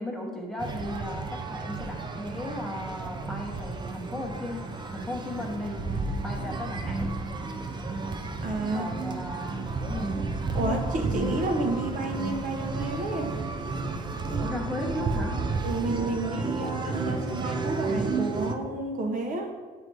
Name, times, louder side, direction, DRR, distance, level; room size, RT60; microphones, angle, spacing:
voice 1, 0.0-5.9 6.2-7.1 8.6-9.6 9.9-10.2 14.4-15.4, left 1 dB, ahead, -1 dB, 1.0 m, -36 dB
sound 1, 0.6-18.5, right 3 dB, 25° right, 0.5 m, -32 dB
voice 2, 8.4-8.8 10.5-13.3 15.6-19.5, right 2 dB, 50° right, 2 dB, 0.8 m, -30 dB
7.5 x 2.7 x 4.6 m, 1.4 s
cardioid pair, 110°, 17 cm